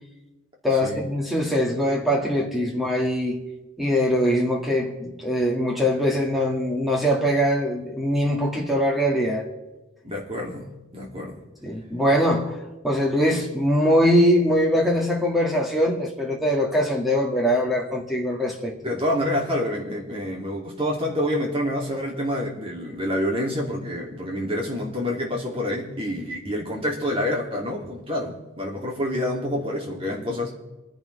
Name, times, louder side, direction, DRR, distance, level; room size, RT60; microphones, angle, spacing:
voice 1, 0.6-3.4 3.8-9.4 11.6-12.6 12.8-18.7, equal, ahead, 2.0 m, -22 dB
voice 2, 10.0-11.4 18.8-30.5, left 1 dB, 25° right, 2.8 m, -27 dB
27.5 x 10.5 x 3.4 m
head